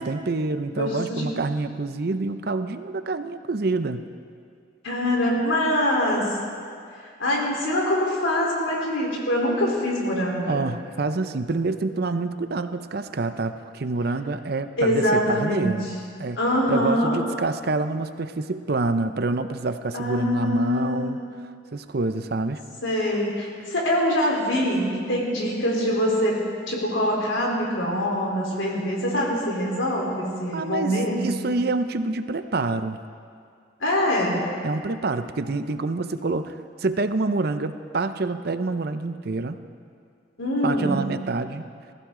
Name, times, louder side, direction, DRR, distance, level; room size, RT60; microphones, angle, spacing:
voice 1, 0.0-4.0 10.5-15.9 16.2-16.4 16.7-21.2 21.7-22.6 30.5-33.0 34.6-39.6 40.6-41.7, right 3 dB, 55° right, 10 dB, 0.6 m, -27 dB
voice 2, 0.7-1.3 4.8-6.4 7.2-10.7 14.8-15.8 16.4-17.2 19.9-21.1 22.8-26.4 26.7-31.4 33.8-34.4 40.4-40.9, left 1 dB, 90° left, -2 dB, 3.7 m, -24 dB
20.5 x 15.0 x 3.8 m, 2.3 s
head